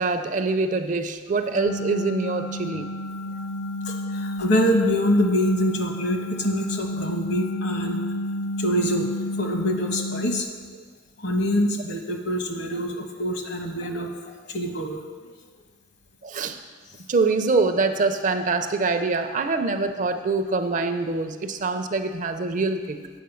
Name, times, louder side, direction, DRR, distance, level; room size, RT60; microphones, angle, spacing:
voice 1, 0.0-2.9 16.2-16.6 17.0-23.1, right 3 dB, 40° right, 8 dB, 0.5 m, -24 dB
sound 1, 1.6-10.4, left 1 dB, 85° left, 0.5 m, -31 dB
voice 2, 3.8-8.0 8.6-10.5 11.2-15.0 15.2-15.3, equal, 60° left, 3 dB, 1.2 m, -25 dB
8.6 x 5.6 x 7.0 m, 1.5 s
head